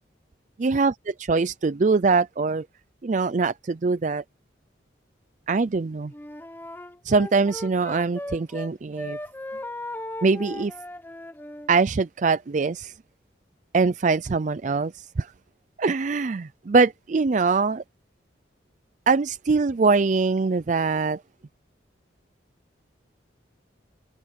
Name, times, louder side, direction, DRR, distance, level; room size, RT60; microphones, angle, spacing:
voice 1, 0.6-2.6 3.0-4.2 5.5-6.1 7.0-9.2 10.2-10.7 11.7-12.9 13.7-15.3 15.8-17.8 19.1-21.2, right 4 dB, 40° right, 0.4 m, -23 dB
Wind instrument woodwind instrument, 6.1-8.7 8.9-11.7, left 1 dB, 10° left, 0.9 m, -37 dB
open air
head